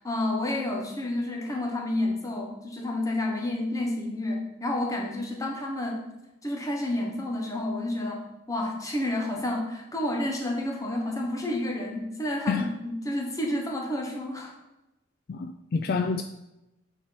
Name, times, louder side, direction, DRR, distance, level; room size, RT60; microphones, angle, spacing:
voice 1, 0.0-6.1 6.4-8.2 8.5-14.5, left 1 dB, 15° left, 0 dB, 1.1 m, -30 dB
voice 2, 15.3-16.2, left 4 dB, 45° left, 6 dB, 0.3 m, -27 dB
8.7 x 4.5 x 4.7 m, 0.95 s
head